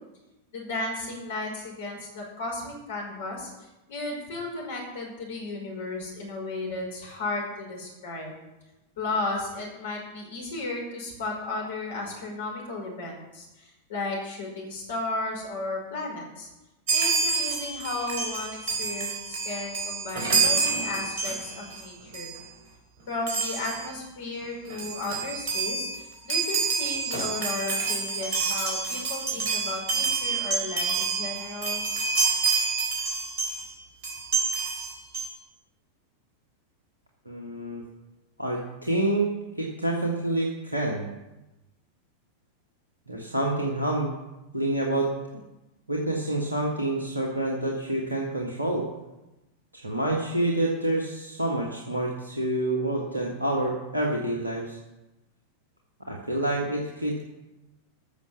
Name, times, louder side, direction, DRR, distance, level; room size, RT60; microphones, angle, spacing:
voice 1, 0.5-8.3 9.0-16.5 16.9-22.3 23.1-31.9, left 2 dB, 60° left, 0 dB, 4.9 m, -34 dB
Chime, 16.9-21.8 22.1-22.4 23.3-23.9 24.4-24.5 24.7-33.7 34.0-35.3, right 4 dB, 50° right, 4.2 m, -28 dB
voice 2, 37.2-37.8 38.4-39.3 39.5-41.1 43.1-44.1 44.5-45.1 45.9-48.9 49.7-54.8 56.1-57.3, right 1 dB, 85° right, -1 dB, 1.6 m, -27 dB
14.0 x 6.1 x 7.0 m, 1.0 s
figure-of-eight pair, 90°, 0 cm